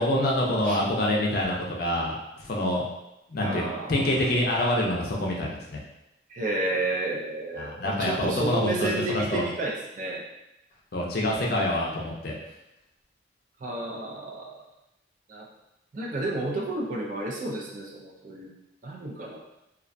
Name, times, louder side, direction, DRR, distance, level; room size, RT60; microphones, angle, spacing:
voice 1, 0.0-2.8 3.3-3.6 3.9-5.8 7.6-9.4 10.9-12.4, left 1 dB, 50° left, -2 dB, 0.4 m, -26 dB
voice 2, 3.4-4.0 6.3-10.2 13.6-14.6 15.3-15.5 15.9-18.5 18.8-19.4, right 2 dB, 40° right, -1 dB, 0.3 m, -31 dB
2.3 x 2.2 x 2.5 m, 0.89 s
head